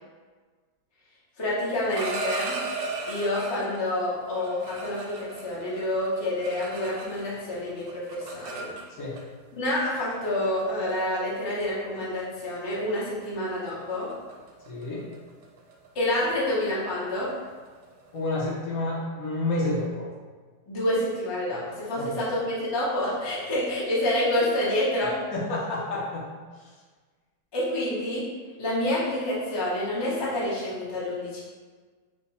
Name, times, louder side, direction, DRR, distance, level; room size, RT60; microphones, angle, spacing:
voice 1, 1.4-2.6 3.1-8.7 9.5-14.1 15.9-17.3 20.7-25.2 27.5-28.3 28.6-31.4, left 1 dB, 40° left, -7 dB, 0.3 m, -28 dB
sound 1, 1.7-3.8 4.4-7.4 7.7-9.2 10.1-10.3 10.6-10.9 11.3-11.6 12.0-12.2 12.5-12.8 13.0-18.4, right 3 dB, 90° right, 1.2 m, -37 dB
voice 2, 14.7-15.0 18.1-20.1 22.0-22.3 25.3-26.3 26.6-26.7, left 2 dB, 60° left, -4 dB, 1.2 m, -29 dB
3.5 x 2.2 x 4.1 m, 1.5 s
omnidirectional pair, 1.8 m